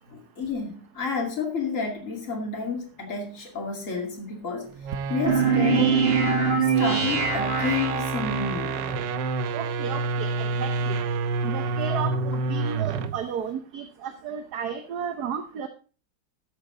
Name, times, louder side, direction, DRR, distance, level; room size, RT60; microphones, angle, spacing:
voice 1, 0.1-4.7 5.1-6.0 6.6-8.9, left 4 dB, 45° left, 1 dB, 2.8 m, -30 dB
sound 1, 4.7-13.2, right 3 dB, 85° right, 1.5 m, -29 dB
sound 2, 5.3-8.5, right 5 dB, 35° right, 1.4 m, -23 dB
voice 2, 9.5-11.0 11.4-15.7, right 7 dB, 65° right, 8 dB, 1.4 m, -33 dB
13.5 x 8.2 x 3.8 m, 0.37 s
omnidirectional pair, 1.9 m